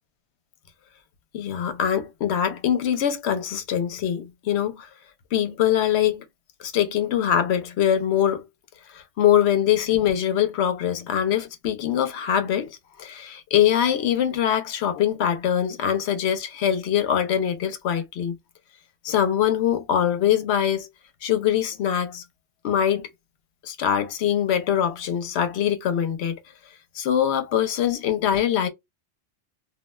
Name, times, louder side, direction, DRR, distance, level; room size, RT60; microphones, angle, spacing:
voice 1, 1.3-4.9 5.3-6.2 6.6-8.4 8.9-18.4 19.0-20.9 21.2-22.2 22.6-23.1 23.6-26.4 26.9-28.7, left 9 dB, 70° left, 0.9 m, -23 dB
2.3 x 2.2 x 3.0 m
omnidirectional pair, 1.2 m